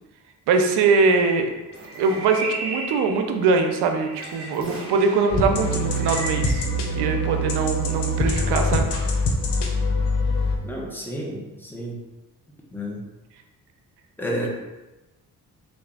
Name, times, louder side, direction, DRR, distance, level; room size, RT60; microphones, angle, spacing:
voice 1, 0.5-1.5 2.0-6.7 7.0-8.9, right 4 dB, 85° right, 5 dB, 0.6 m, -22 dB
sound 1, 1.0-5.5 5.9-6.7, right 2 dB, 35° right, 1.0 m, -35 dB
sound 2, 5.3-10.6, left 1 dB, 80° left, 0.7 m, -24 dB
voice 2, 10.6-12.0 12.7-13.0 14.2-14.5, equal, 5° left, -2 dB, 0.9 m, -31 dB
3.6 x 2.6 x 3.4 m, 1.1 s
cardioid pair, 60°, 39 cm